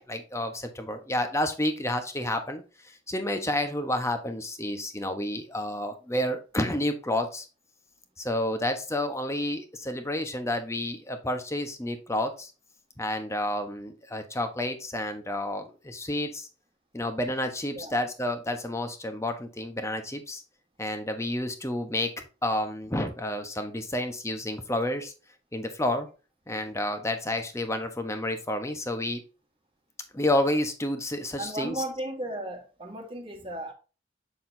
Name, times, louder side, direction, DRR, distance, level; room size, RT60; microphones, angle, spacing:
voice 1, 0.0-7.5 8.2-12.5 13.0-16.5 16.9-20.4 20.8-22.1 22.4-25.1 25.5-26.1 26.5-29.2 30.1-31.8, left 1 dB, 15° left, 1.0 m, -30 dB
voice 2, 31.4-33.7, right 1 dB, 30° right, 1.6 m, -35 dB
7.8 x 6.7 x 2.7 m
head